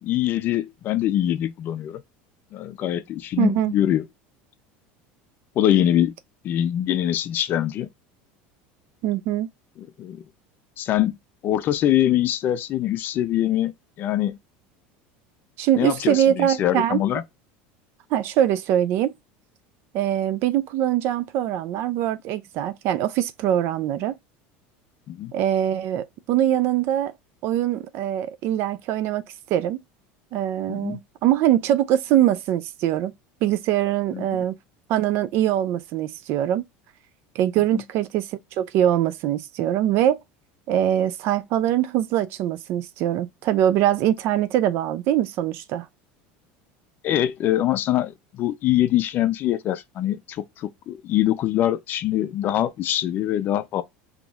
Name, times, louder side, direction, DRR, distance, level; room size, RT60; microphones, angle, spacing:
voice 1, 0.0-2.0 2.5-4.1 5.6-6.2 6.4-7.9 9.8-10.2 10.8-11.2 11.4-13.7 14.0-14.4 15.8-17.2 25.1-25.3 30.7-31.0 34.1-34.5 37.7-37.8 47.0-53.8, left 12 dB, 40° left, 0.5 m, -23 dB
voice 2, 3.4-3.7 9.0-9.5 15.6-17.0 18.1-19.1 19.9-24.1 25.3-27.1 27.4-29.2 29.5-29.8 30.3-33.1 33.4-34.6 34.9-36.6 37.4-40.2 40.7-45.9, right 11 dB, 50° right, 0.4 m, -23 dB
3.9 x 2.9 x 2.4 m
supercardioid pair, 145°, 5 cm